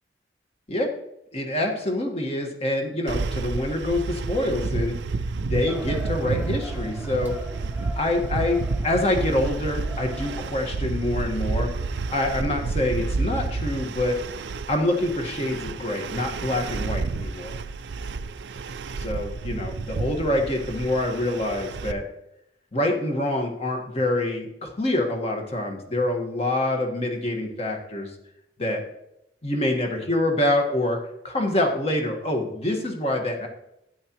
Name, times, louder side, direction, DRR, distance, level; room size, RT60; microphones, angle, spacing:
voice 1, 1.3-5.0 5.4-7.4 8.0-11.7 12.1-14.2 14.7-17.5 19.0-22.0 22.7-28.1 28.6-28.8 29.4-31.0 31.2-33.5, left 1 dB, 35° left, 2 dB, 1.5 m, -26 dB
sound 1, 3.1-21.9, right 3 dB, 85° right, 0.4 m, -30 dB
sound 2, 5.7-10.9, right 2 dB, 10° right, 0.6 m, -41 dB
sound 3, 6.3-14.4, right 3 dB, 65° left, 3.0 m, -45 dB
12.5 x 9.3 x 3.0 m, 0.83 s
head